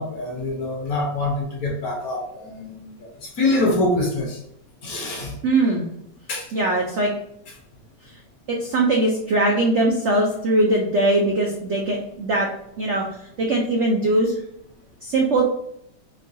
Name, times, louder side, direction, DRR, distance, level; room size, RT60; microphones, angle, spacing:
voice 1, 0.0-2.9 3.4-4.4 4.8-5.3 6.3-6.4, left 2 dB, 60° left, 0 dB, 1.2 m, -24 dB
voice 2, 5.4-5.9 6.5-7.1 8.6-12.5 12.8-13.1 13.4-14.3 15.0-15.5, right 2 dB, 75° right, -1 dB, 0.6 m, -20 dB
4.6 x 2.3 x 2.6 m, 0.74 s
omnidirectional pair, 1.9 m